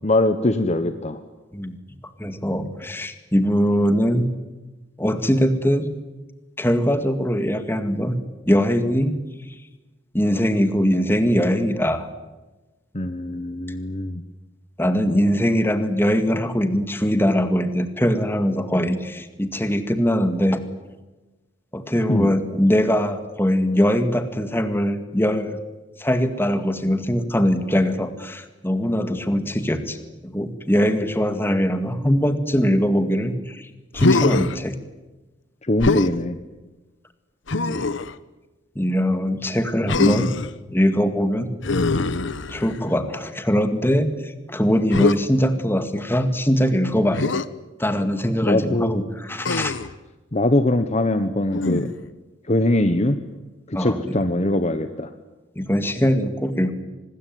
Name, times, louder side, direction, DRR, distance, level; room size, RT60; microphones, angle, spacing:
voice 1, 0.0-1.2 12.9-14.2 22.1-22.3 35.7-36.4 48.4-49.0 50.3-51.9 52.5-53.2 53.7-55.1, left 1 dB, 35° left, 9 dB, 1.1 m, -22 dB
voice 2, 2.2-4.3 5.0-5.9 6.6-8.2 8.5-9.1 10.1-12.1 14.8-20.6 21.7-25.6 26.0-30.0 30.2-33.7 33.9-34.8 37.6-37.9 38.8-40.3 40.7-41.5 42.5-47.3 47.8-49.7 53.7-54.2 55.6-56.7, equal, 10° left, 9 dB, 2.0 m, -21 dB
Human voice, 33.9-34.6 35.8-36.1 37.5-38.1 39.9-40.5 41.6-42.9 44.9-45.2 47.1-47.5 49.4-49.9 51.5-52.1, left 3 dB, 70° left, 1.0 m, -22 dB
25.5 x 20.5 x 9.4 m, 1.2 s
head